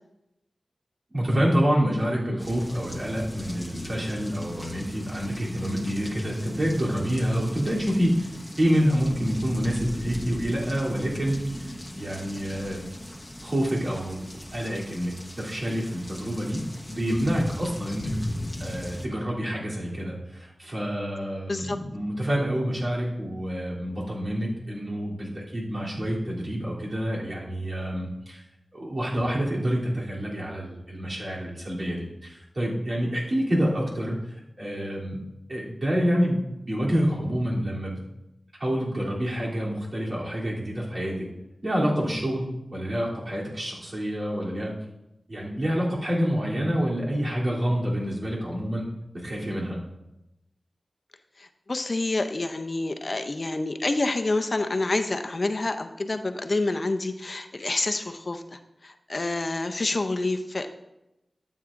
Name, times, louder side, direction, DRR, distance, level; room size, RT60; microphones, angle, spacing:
voice 1, 1.1-8.3 8.6-12.9 13.4-14.2 14.5-16.6 16.9-18.1 18.6-28.4 28.7-34.2 34.6-35.2 35.5-36.4 36.7-37.9 38.6-41.3 41.6-42.4 42.7-44.7 45.3-48.9 49.2-49.8, equal, 55° right, -5 dB, 3.1 m, -27 dB
sound 1, 2.4-19.1, left 1 dB, 10° left, 1.0 m, -38 dB
voice 2, 51.4-60.7, left 2 dB, 50° left, 7 dB, 0.6 m, -28 dB
12.5 x 8.1 x 2.6 m, 0.92 s
wide cardioid pair, 55°, 0 cm